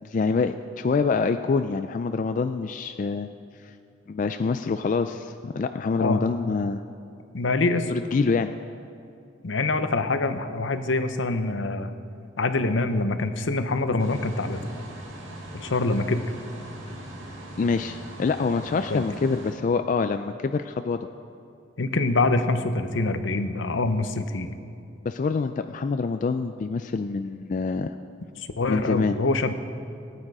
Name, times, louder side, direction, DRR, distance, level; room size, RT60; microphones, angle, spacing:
voice 1, 0.0-3.3 4.1-6.8 7.9-8.5 17.6-21.1 25.1-27.9 28.7-29.2, left 4 dB, 40° left, 8 dB, 0.3 m, -26 dB
voice 2, 7.3-7.9 9.4-11.9 12.4-14.7 15.5-16.2 18.9-19.0 21.8-24.5 28.6-29.5, left 2 dB, 75° left, 9 dB, 0.8 m, -25 dB
sound 1, 14.0-19.5, right 1 dB, 85° right, 2.0 m, -40 dB
17.5 x 8.9 x 4.9 m, 2.5 s
head